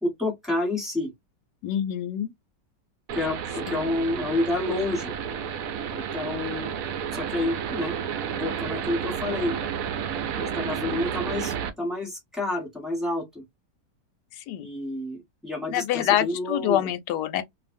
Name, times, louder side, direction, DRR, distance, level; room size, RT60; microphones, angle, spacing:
voice 1, 0.0-1.1 3.1-5.1 5.9-6.7 7.1-8.0 8.3-9.6 10.4-13.4 14.6-16.9, left 2 dB, ahead, 1.1 m, -29 dB
voice 2, 1.6-2.3 3.7-3.8 14.4-14.7 15.7-17.4, left 11 dB, 75° left, 1.1 m, -26 dB
sound 1, 3.1-11.7, right 8 dB, 75° right, 0.8 m, -31 dB
2.6 x 2.5 x 2.5 m
omnidirectional pair, 2.0 m